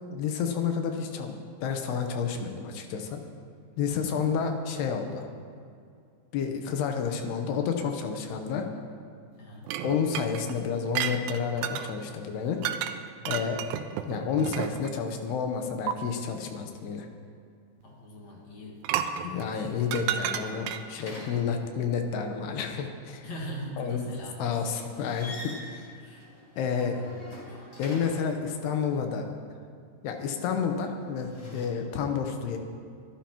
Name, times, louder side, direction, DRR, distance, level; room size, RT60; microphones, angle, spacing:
voice 1, 0.1-3.2 3.8-5.3 6.3-8.7 9.8-12.6 13.3-13.6 14.1-17.1 19.2-23.3 23.8-24.1 24.4-25.9 26.6-27.0 27.8-29.3 30.0-32.6, left 6 dB, 85° left, 4 dB, 2.9 m, -30 dB
voice 2, 9.4-9.8 17.8-19.9 23.2-24.5 26.0-26.3 26.8-27.6, equal, 50° left, -3 dB, 2.5 m, -42 dB
sound 1, 9.7-11.9 12.6-13.0 13.3-15.0 15.9-16.0 18.8-21.0, right 10 dB, 90° right, 2.8 m, -32 dB
sound 2, 19.7-22.0 24.8-28.4 31.0-31.7, left 1 dB, 30° left, 3.4 m, -46 dB
23.5 x 12.5 x 3.0 m, 2.4 s
omnidirectional pair, 4.8 m